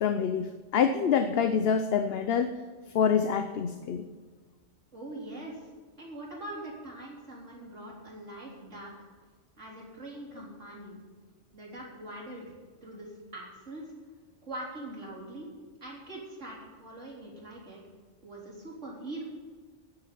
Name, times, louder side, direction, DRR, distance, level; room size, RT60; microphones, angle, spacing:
voice 1, 0.0-2.5 2.9-4.0, left 7 dB, 60° left, 8 dB, 0.9 m, -26 dB
voice 2, 4.9-5.7 6.0-8.9 9.6-11.0 11.5-12.5 12.8-13.8 14.4-15.5 15.8-17.8 18.2-19.2, right 1 dB, 80° right, -4 dB, 4.2 m, -42 dB
10.0 x 9.7 x 8.5 m, 1.4 s
omnidirectional pair, 1.2 m